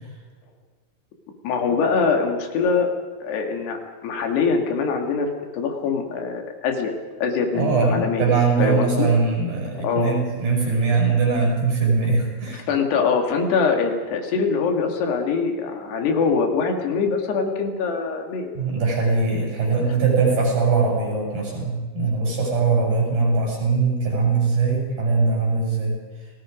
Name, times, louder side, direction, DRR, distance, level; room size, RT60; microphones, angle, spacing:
voice 1, 1.4-2.9 3.2-6.9 7.2-8.3 8.6-9.1 9.8-10.2 12.7-18.5, left 5 dB, 85° left, 4 dB, 4.3 m, -23 dB
voice 2, 7.5-12.7 18.6-26.0, right 4 dB, 60° right, -2 dB, 8.5 m, -21 dB
30.0 x 19.5 x 5.1 m, 1.4 s
omnidirectional pair, 4.6 m